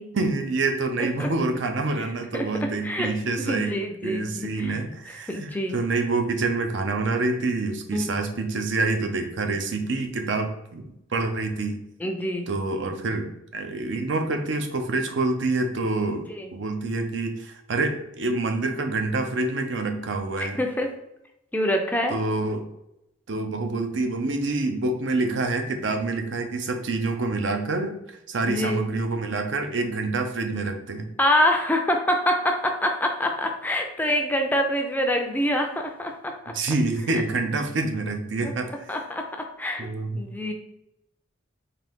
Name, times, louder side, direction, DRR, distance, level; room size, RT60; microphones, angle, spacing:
voice 1, 0.1-3.7 4.0-10.8 11.1-11.8 12.5-20.6 22.1-22.7 23.3-31.1 36.5-38.7 39.8-40.2, right 3 dB, 70° right, 5 dB, 0.6 m, -27 dB
voice 2, 2.3-3.1 3.5-4.8 5.1-5.8 7.9-8.1 12.0-12.5 16.4-16.5 20.4-20.9 21.5-22.2 28.5-28.8 31.2-36.5 38.4-38.5 38.9-39.9 40.2-40.5, left 1 dB, 10° left, 3 dB, 0.4 m, -26 dB
3.8 x 2.7 x 3.5 m, 0.85 s
head